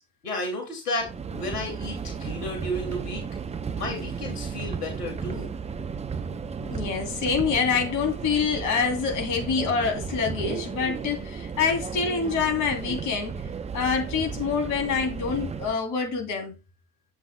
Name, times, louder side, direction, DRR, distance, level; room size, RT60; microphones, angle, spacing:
voice 1, 0.2-3.3 3.8-5.5, left 1 dB, 80° left, 2.5 m, -32 dB
Subway metro underground, 1.0-15.8, right 6 dB, 15° right, 0.6 m, -34 dB
voice 2, 6.6-13.4 13.7-16.6, left 5 dB, 40° left, 3.1 m, -26 dB
10.5 x 7.7 x 2.2 m
figure-of-eight pair, 75°, 46 cm